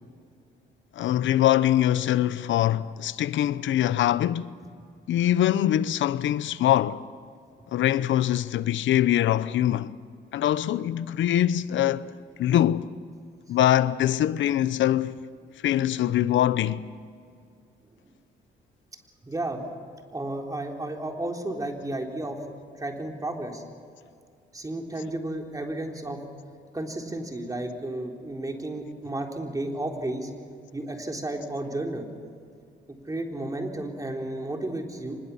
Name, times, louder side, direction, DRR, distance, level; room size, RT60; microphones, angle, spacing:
voice 1, 1.0-4.5 5.1-7.0 7.7-9.9 10.3-12.1 12.4-12.9 13.5-15.2 15.6-16.9, left 12 dB, 75° left, 0.8 m, -23 dB
voice 2, 19.2-19.6 20.1-22.4 22.7-23.6 24.5-26.2 26.7-30.3 30.7-32.1 32.9-35.2, right 1 dB, 15° right, 3.8 m, -32 dB
25.0 x 21.5 x 7.1 m
cardioid pair, 90°, 20 cm